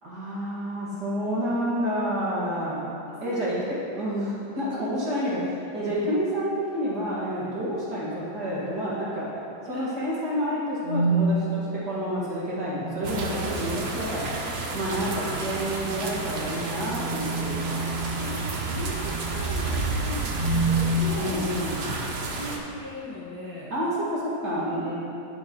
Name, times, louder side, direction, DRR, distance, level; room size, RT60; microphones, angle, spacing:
voice 1, 0.0-2.8 3.2-9.3 9.7-14.3 14.7-17.9 21.1-21.9 23.7-24.9, equal, 65° right, -9 dB, 2.8 m, -29 dB
voice 2, 3.1-3.4 9.6-9.9 18.2-21.4 22.1-23.7, equal, 15° left, -9 dB, 1.6 m, -38 dB
sound 1, 10.8-11.3 12.6-13.1 15.3-19.5 20.2-20.9, right 4 dB, 30° right, 1.1 m, -29 dB
sound 2, 13.0-22.6, right 3 dB, 50° right, 0.8 m, -31 dB
11.0 x 7.9 x 3.1 m, 2.8 s
omnidirectional pair, 1.9 m